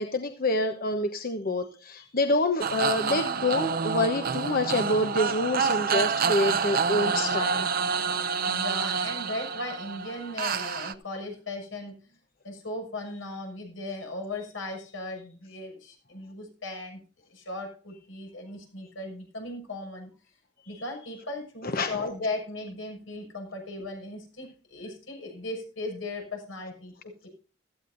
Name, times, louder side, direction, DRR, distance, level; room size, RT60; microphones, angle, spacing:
voice 1, 0.0-7.7 21.6-22.0, left 2 dB, 50° left, 6 dB, 1.1 m, -27 dB
sound 1, 2.6-10.9, right 6 dB, 50° right, 0.7 m, -28 dB
voice 2, 8.5-12.2 12.4-17.0 17.3-20.1 20.6-27.3, left 2 dB, 85° left, 3 dB, 6.4 m, -37 dB
16.5 x 14.0 x 2.7 m, 0.37 s
head